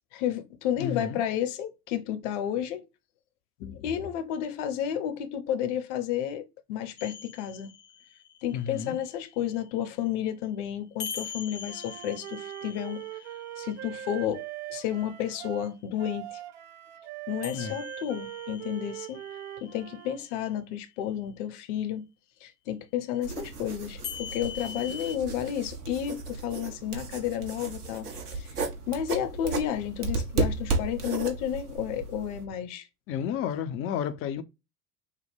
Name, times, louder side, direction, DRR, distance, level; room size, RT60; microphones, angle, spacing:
voice 1, 0.1-2.8 3.8-7.7 8.4-13.0 13.6-14.4 14.7-16.3 17.3-19.2 19.6-22.0 22.4-28.5 28.9-32.9, left 10 dB, 50° left, 0.9 m, -31 dB
voice 2, 0.8-1.2 3.6-3.9 8.5-9.0 17.5-17.8 33.1-34.4, left 8 dB, 30° left, 0.5 m, -32 dB
sound 1, 7.0-9.9 11.0-15.1 17.4-20.5 24.0-25.2, left 8 dB, 85° left, 0.8 m, -43 dB
Wind instrument woodwind instrument, 11.7-20.2, right 13 dB, 35° right, 0.4 m, -41 dB
sound 2, 23.2-32.4, right 3 dB, 75° right, 1.4 m, -34 dB
6.4 x 2.2 x 3.3 m
figure-of-eight pair, 75°, 47 cm